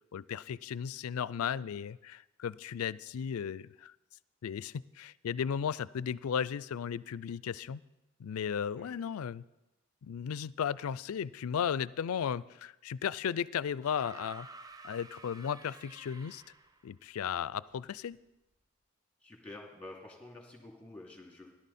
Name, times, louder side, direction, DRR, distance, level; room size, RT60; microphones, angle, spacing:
voice 1, 0.1-3.9 4.4-7.8 8.2-9.4 10.0-16.4 16.8-18.2, left 7 dB, 85° left, 20 dB, 0.4 m, -35 dB
sound 1, 13.8-16.9 18.1-18.2, right 3 dB, 15° right, 0.5 m, -51 dB
voice 2, 19.2-21.5, left 2 dB, 5° left, 0 dB, 2.7 m, -49 dB
17.0 x 11.5 x 4.2 m, 0.96 s
head